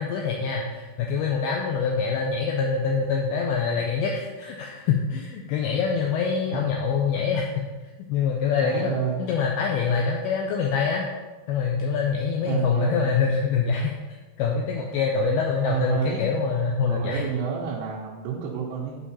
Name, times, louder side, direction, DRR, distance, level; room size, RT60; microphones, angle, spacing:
voice 1, 0.0-7.5 8.1-11.1 11.5-14.0 14.4-17.2, left 5 dB, 80° left, 0 dB, 2.3 m, -25 dB
voice 2, 8.6-9.2 12.5-13.0 15.7-16.2 16.9-19.0, right 8 dB, 80° right, -5 dB, 3.2 m, -29 dB
11.0 x 5.0 x 4.2 m, 1.2 s
omnidirectional pair, 5.0 m